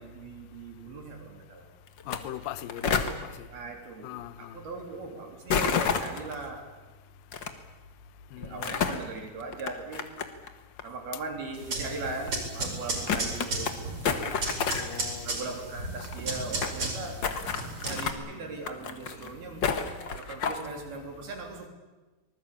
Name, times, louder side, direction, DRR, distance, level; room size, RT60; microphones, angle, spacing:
voice 1, 0.0-1.6 3.5-6.7 8.4-10.1 10.8-13.8 15.2-19.8 20.2-21.7, right 3 dB, 70° right, 5.6 m, -39 dB
sound 1, 2.0-2.2 2.4-3.1 5.5-6.3 7.3-7.5 8.4-9.0 9.5-10.5 10.8-10.9 11.7-11.8 12.3-12.4 12.6-12.7 13.1-13.7 14.0-15.0 15.3-15.4 15.6-15.7 15.8-16.8 17.2-18.2 18.6-19.3 19.6-20.7, left 6 dB, 55° left, 1.2 m, -29 dB
voice 2, 2.1-3.5 4.0-4.6 8.3-8.9 14.7-15.4, left 12 dB, 70° left, 2.6 m, -40 dB
sound 2, 11.5-18.1, right 2 dB, 35° right, 5.5 m, -35 dB
25.5 x 20.0 x 8.6 m
omnidirectional pair, 4.5 m